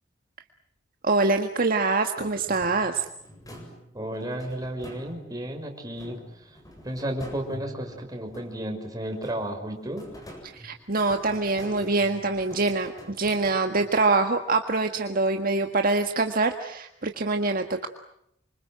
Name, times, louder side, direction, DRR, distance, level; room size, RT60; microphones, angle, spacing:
voice 1, 1.0-3.0 10.5-17.9, right 3 dB, 50° right, 6 dB, 1.7 m, -24 dB
sound 1, 2.5-5.5 5.9-8.8 9.1-14.1, equal, 20° left, 7.7 m, -46 dB
voice 2, 3.9-6.2 6.8-10.1, right 1 dB, 20° right, 3 dB, 5.8 m, -33 dB
28.5 x 25.5 x 7.9 m, 0.76 s
head